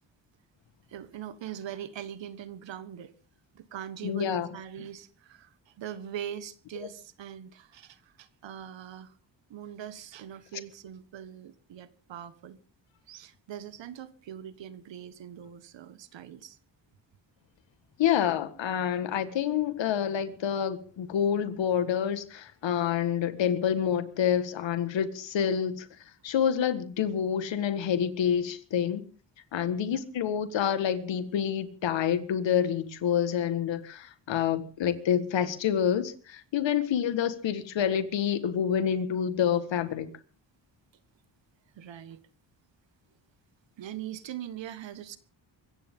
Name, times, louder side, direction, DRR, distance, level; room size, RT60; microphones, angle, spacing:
voice 1, 0.9-3.1 3.5-9.1 9.5-12.6 13.1-16.6 29.7-30.0 41.8-42.2 43.8-45.2, right 10 dB, 80° right, 1.6 m, -42 dB
voice 2, 4.0-4.5 18.0-25.9 26.2-29.0 29.5-40.1, left 8 dB, 80° left, 1.7 m, -27 dB
24.0 x 15.0 x 3.7 m
cardioid pair, 80°, 44 cm